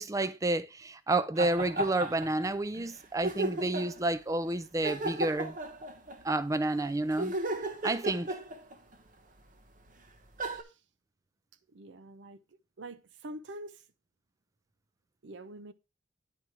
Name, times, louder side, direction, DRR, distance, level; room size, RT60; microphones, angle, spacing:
voice 1, 0.0-5.6 6.2-7.3 7.8-8.3, right 2 dB, 20° right, 0.5 m, -30 dB
sound 1, 1.4-2.5 2.7-2.9 3.2-4.0 4.8-6.3 7.1-8.9 9.9-10.0 10.4-10.6, right 2 dB, 45° right, 0.9 m, -35 dB
voice 2, 11.7-12.4 12.8-13.8 15.2-15.7, right 1 dB, 70° right, 0.6 m, -45 dB
9.2 x 4.6 x 4.7 m
head